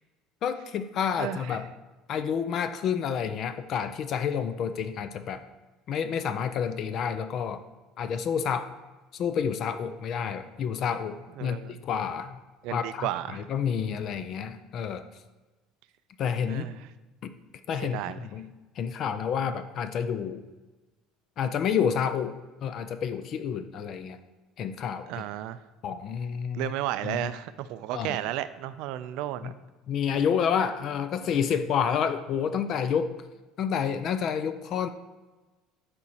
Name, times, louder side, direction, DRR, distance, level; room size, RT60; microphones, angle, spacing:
voice 1, 0.4-1.7 2.1-5.4 5.9-7.6 8.0-8.7 9.1-11.6 11.8-12.4 12.7-15.0 16.2-16.7 17.2-17.3 17.7-18.5 18.8-20.4 21.4-24.2 24.6-25.3 25.8-26.7 27.0-27.3 27.9-28.2 29.4-29.5 29.9-33.1 33.6-34.9, left 7 dB, 40° left, 10 dB, 0.3 m, -29 dB
voice 2, 1.2-1.6 11.4-11.8 12.6-13.4 16.5-16.7 17.8-18.2 25.1-25.6 26.5-29.5, right 13 dB, 65° right, 13 dB, 0.4 m, -33 dB
12.0 x 5.0 x 2.9 m, 1.2 s
cardioid pair, 160°, 0 cm